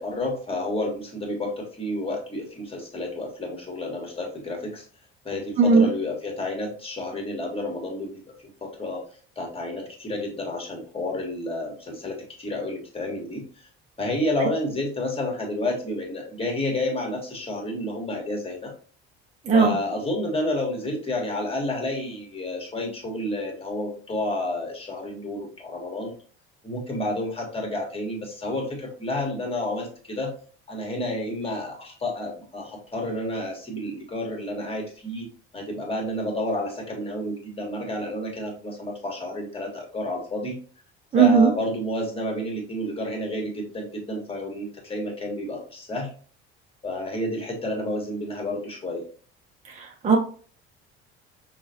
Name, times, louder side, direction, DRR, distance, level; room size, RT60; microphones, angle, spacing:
voice 1, 0.0-4.8 5.2-8.2 8.6-9.0 9.3-13.7 14.0-18.7 19.5-26.1 26.6-30.3 30.7-35.3 35.5-40.6 41.1-46.1 46.8-49.0, left 1 dB, 15° left, 1 dB, 1.5 m, -30 dB
voice 2, 5.6-5.9 14.4-14.5 19.5-19.7 41.1-41.5 50.0-50.2, right 5 dB, 20° right, 1 dB, 0.7 m, -16 dB
5.4 x 2.4 x 2.7 m, 0.41 s
figure-of-eight pair, 60°, 32 cm